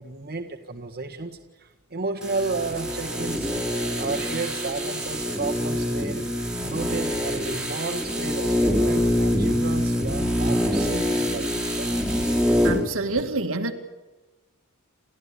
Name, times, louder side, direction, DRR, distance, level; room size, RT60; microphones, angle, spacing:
voice 1, 0.0-3.5 4.0-6.2 6.6-12.0, right 3 dB, 45° right, 1.8 m, -33 dB
sound 1, 2.2-12.9 13.2-13.3, equal, 5° right, 3.1 m, -25 dB
voice 2, 12.6-13.7, right 3 dB, 65° right, 2.2 m, -27 dB
30.0 x 13.5 x 9.9 m
head